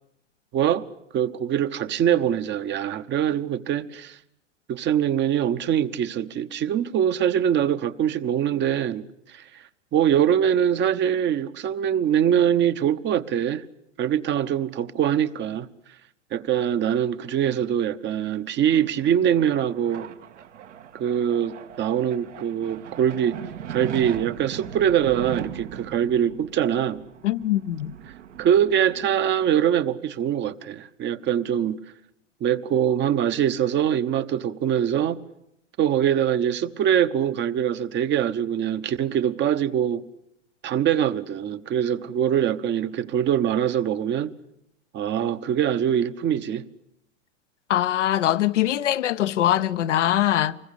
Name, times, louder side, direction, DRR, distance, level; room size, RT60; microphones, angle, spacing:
voice 1, 0.5-0.8 1.1-4.2 4.7-9.6 9.9-13.6 14.0-15.7 16.3-20.1 20.9-23.4 23.7-27.0 28.4-31.8 32.4-35.2 35.8-40.0 40.6-44.3 44.9-46.6, right 9 dB, 30° right, 1.0 m, -23 dB
sound 1, 18.7-30.0, right 9 dB, 75° right, 1.9 m, -39 dB
voice 2, 27.2-27.9 47.7-50.6, left 12 dB, 70° left, 0.9 m, -22 dB
25.5 x 21.0 x 8.4 m
hypercardioid pair, 100°, 37 cm